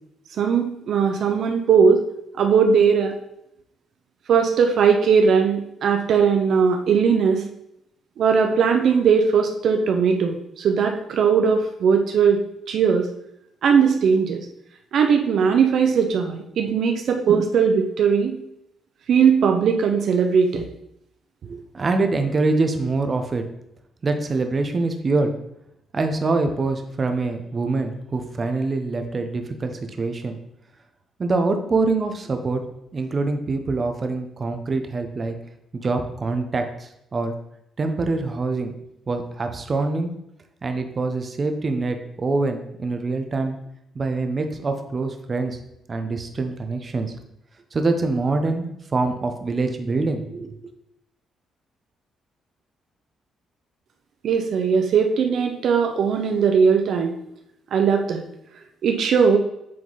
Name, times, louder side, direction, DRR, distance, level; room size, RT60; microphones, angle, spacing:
voice 1, 0.4-2.0 2.4-3.1 4.3-7.4 8.2-12.4 12.7-13.1 13.6-14.5 14.9-18.4 19.1-20.7 54.2-57.1 57.7-58.2 58.8-59.4, right 6 dB, 65° right, 4 dB, 0.6 m, -19 dB
voice 2, 21.4-23.4 24.0-25.3 25.9-30.4 31.2-32.6 32.9-35.4 35.7-37.4 37.8-38.7 39.1-40.1 40.6-43.6 43.9-45.6 45.9-47.1 47.7-50.6, right 3 dB, 35° right, 6 dB, 0.8 m, -24 dB
7.7 x 3.7 x 4.0 m, 0.79 s
cardioid pair, 90°, 0 cm